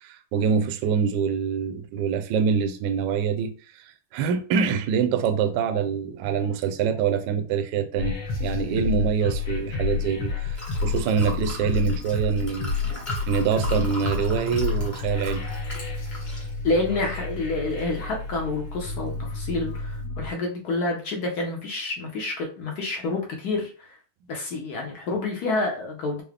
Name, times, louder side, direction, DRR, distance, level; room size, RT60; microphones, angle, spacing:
voice 1, 0.0-15.4, right 7 dB, 75° right, 1.1 m, -25 dB
sound 1, 8.0-20.3, left 4 dB, 85° left, 2.1 m, -30 dB
Liquid, 9.5-20.1, left 1 dB, 20° left, 1.0 m, -40 dB
voice 2, 16.6-24.0 24.3-26.2, left 3 dB, 65° left, 1.0 m, -28 dB
4.7 x 2.1 x 3.3 m
omnidirectional pair, 2.3 m